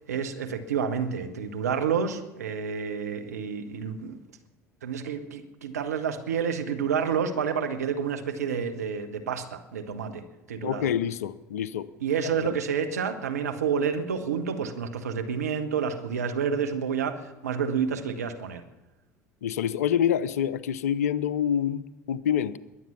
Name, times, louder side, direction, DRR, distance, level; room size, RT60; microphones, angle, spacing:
voice 1, 0.1-4.2 4.8-10.2 10.5-10.9 12.0-18.6, right 6 dB, 75° right, 7 dB, 1.1 m, -29 dB
voice 2, 10.6-11.9 12.2-12.6 19.4-22.6, left 9 dB, 70° left, 18 dB, 0.5 m, -27 dB
21.5 x 7.8 x 5.9 m, 1.0 s
figure-of-eight pair, 65°, 9 cm